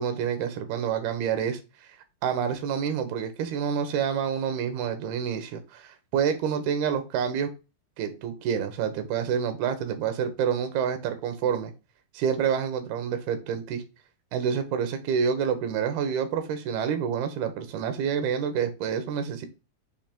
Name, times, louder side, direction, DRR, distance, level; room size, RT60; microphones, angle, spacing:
voice 1, 0.0-1.6 2.2-7.5 8.0-11.7 12.1-13.8 14.3-19.5, right 7 dB, 90° right, 8 dB, 3.0 m, -28 dB
7.0 x 2.9 x 5.1 m, 0.29 s
omnidirectional pair, 4.3 m